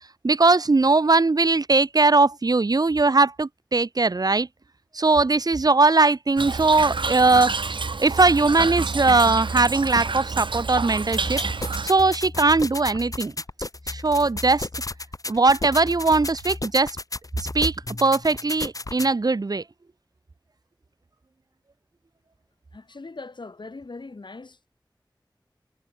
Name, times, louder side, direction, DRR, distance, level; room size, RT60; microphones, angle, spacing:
voice 1, 0.2-4.5 4.9-7.5 8.0-11.4 11.8-13.3 13.9-14.7 15.3-17.0 17.4-17.7 18.0-19.6, right 3 dB, 50° right, 0.7 m, -20 dB
Toilet flush / Trickle dribble, 6.4-11.9, right 4 dB, 85° right, 1.1 m, -28 dB
sound 1, 11.1-19.1, left 2 dB, 45° left, 1.6 m, -34 dB
voice 2, 22.7-24.7, left 3 dB, 70° left, 3.0 m, -40 dB
wide cardioid pair, 60°, 8 cm